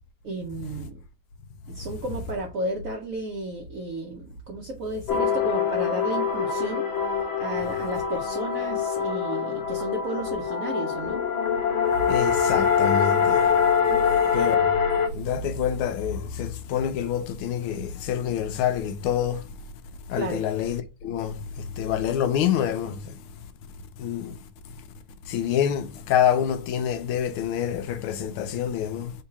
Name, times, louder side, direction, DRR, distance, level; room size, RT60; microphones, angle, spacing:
voice 1, 0.2-1.0 1.7-6.9 7.4-11.2 13.9-14.2 20.2-20.4, right 1 dB, 70° right, 0.8 m, -33 dB
sound 1, 5.1-15.1, left 7 dB, 70° left, 1.6 m, -24 dB
voice 2, 12.1-13.4 14.3-14.7 15.1-19.4 20.1-23.2 24.0-24.4 25.3-29.1, left 9 dB, 90° left, 1.5 m, -27 dB
3.7 x 2.8 x 4.6 m
omnidirectional pair, 2.3 m